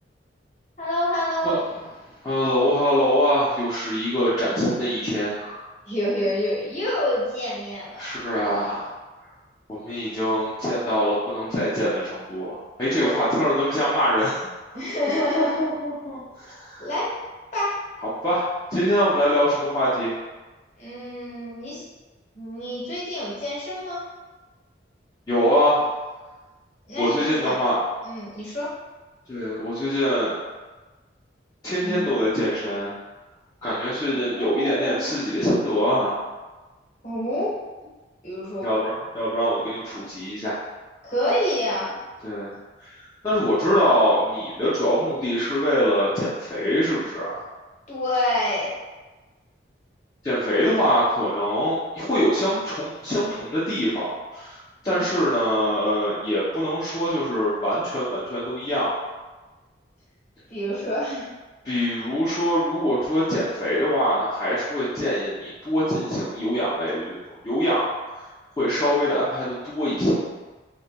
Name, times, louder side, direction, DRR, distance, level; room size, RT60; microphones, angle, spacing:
voice 1, 0.8-1.6 5.9-8.0 12.9-13.4 14.7-15.7 16.8-17.1 17.5-17.7 20.8-21.8 22.3-24.0 26.9-27.6 28.0-28.7 31.8-32.1 34.1-35.0 37.0-37.5 37.8-37.9 38.2-38.7 41.0-41.9 47.9-48.7 54.8-55.1 60.5-61.3, left 1 dB, 40° left, -7 dB, 0.8 m, -27 dB
voice 2, 2.2-5.7 8.0-8.9 9.7-14.5 15.1-16.9 18.2-20.1 25.3-25.9 27.0-27.8 29.3-30.4 31.6-32.9 33.6-36.2 38.6-40.6 42.2-42.5 42.8-47.4 50.2-54.6 54.8-58.9 61.6-67.9 68.2-68.3 68.6-70.2, equal, 20° left, -12 dB, 0.4 m, -24 dB
2.1 x 2.1 x 2.8 m, 1.2 s
head